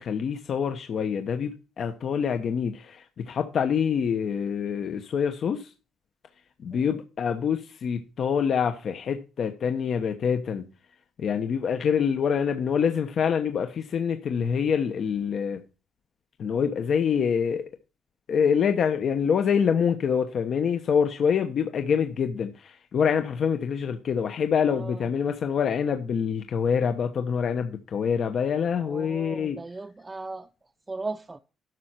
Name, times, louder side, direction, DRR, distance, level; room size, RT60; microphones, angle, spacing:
voice 1, 0.0-5.7 6.6-10.7 11.2-15.6 16.4-17.6 18.3-29.6, left 7 dB, 60° left, 1.0 m, -26 dB
voice 2, 24.7-25.1 28.8-30.5 30.9-31.4, right 3 dB, 20° right, 0.6 m, -37 dB
12.0 x 6.6 x 4.3 m
cardioid pair, 90°, 0 cm